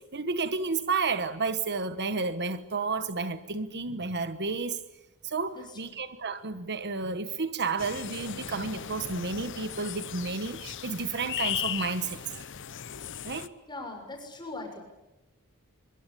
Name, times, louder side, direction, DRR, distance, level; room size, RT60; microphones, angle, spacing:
voice 1, 0.0-4.8 5.2-12.2 13.2-13.5, right 4 dB, 50° right, 1.3 m, -31 dB
sound 1, 7.8-13.5, left 9 dB, 60° left, 0.9 m, -37 dB
voice 2, 13.7-14.8, left 2 dB, 20° left, 6.7 m, -40 dB
25.0 x 23.0 x 8.5 m
head